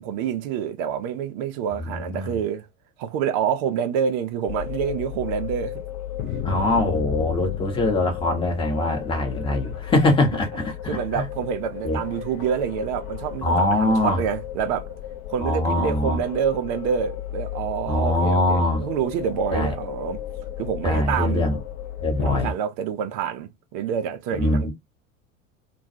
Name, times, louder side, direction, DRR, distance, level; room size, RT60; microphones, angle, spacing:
voice 1, 0.0-2.7 3.0-5.8 10.8-14.9 15.3-20.2 20.6-21.4 22.2-24.7, right 8 dB, 40° right, 0.6 m, -27 dB
voice 2, 1.8-2.4 6.4-11.3 11.8-12.0 13.4-14.2 15.4-16.2 17.9-18.8 19.5-19.7 20.8-21.6 22.0-22.5 24.4-24.7, left 2 dB, 15° left, 0.9 m, -23 dB
sound 1, 4.5-22.5, left 10 dB, 35° left, 0.6 m, -34 dB
2.3 x 2.2 x 2.7 m
figure-of-eight pair, 80°, 40 cm